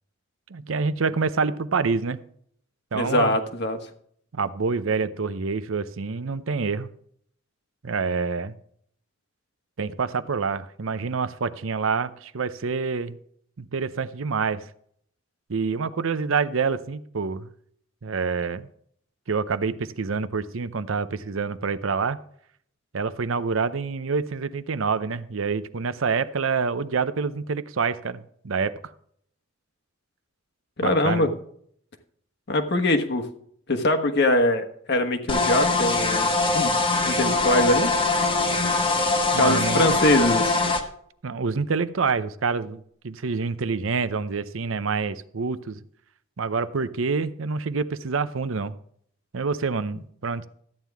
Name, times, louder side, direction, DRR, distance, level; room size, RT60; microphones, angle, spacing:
voice 1, 0.5-2.2 2.9-3.4 4.3-6.9 7.8-8.5 9.8-13.2 13.6-14.6 15.5-17.5 18.0-18.7 19.3-22.2 22.9-28.9 30.8-31.3 39.3-40.0 41.2-45.8 46.4-48.8 49.3-50.5, right 5 dB, 75° right, 13 dB, 0.6 m, -27 dB
voice 2, 2.9-3.8 30.8-31.3 32.5-33.3 33.7-36.7 37.0-37.9 39.3-40.6, left 1 dB, 55° left, 5 dB, 1.3 m, -22 dB
sound 1, 35.3-40.8, left 3 dB, 25° left, 1.2 m, -22 dB
13.0 x 9.2 x 3.5 m, 0.64 s
head